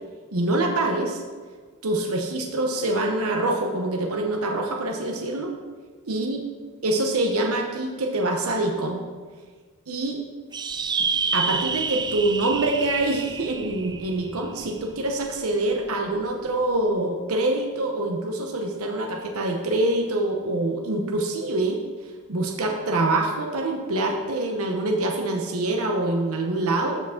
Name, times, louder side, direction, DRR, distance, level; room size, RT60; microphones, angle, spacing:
voice 1, 0.3-1.2 1.8-5.5 6.1-6.4 6.8-9.0 9.9-10.2 11.3-21.8 22.3-27.0, right 2 dB, 75° right, 2 dB, 0.9 m, -25 dB
sound 1, 10.5-15.3, right 5 dB, 20° right, 0.4 m, -29 dB
13.5 x 4.9 x 3.7 m, 1.5 s
head